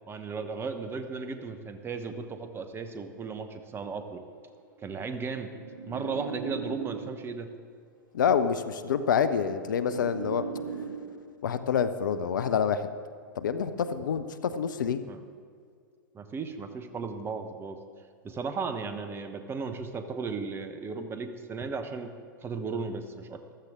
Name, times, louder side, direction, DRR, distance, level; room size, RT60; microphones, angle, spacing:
voice 1, 0.1-4.2 4.8-5.5 5.8-7.5 15.1-15.2 16.1-17.8 18.2-22.1 22.4-23.4, right 4 dB, 20° right, 8 dB, 1.0 m, -35 dB
sound 1, 4.5-7.5 8.5-11.5 12.5-12.8, right 5 dB, 60° right, 1.8 m, -40 dB
voice 2, 8.1-10.4 11.4-12.9 13.4-15.0, left 7 dB, 65° left, 12 dB, 0.7 m, -27 dB
14.5 x 13.5 x 3.7 m, 2.2 s
figure-of-eight pair, 100°, 11 cm